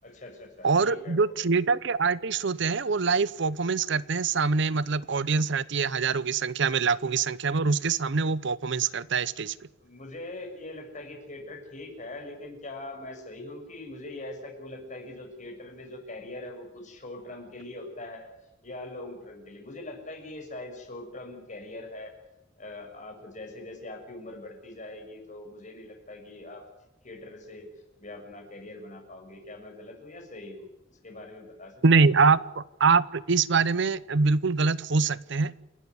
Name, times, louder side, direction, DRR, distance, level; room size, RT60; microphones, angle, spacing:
voice 1, 0.0-1.4 9.8-18.3 18.6-22.1 22.6-26.7 27.0-27.7 28.0-31.8, left 2 dB, 40° left, 3 dB, 6.6 m, -42 dB
voice 2, 0.6-9.5 31.8-35.5, right 4 dB, 65° right, 19 dB, 0.7 m, -24 dB
29.0 x 12.5 x 9.7 m, 0.95 s
head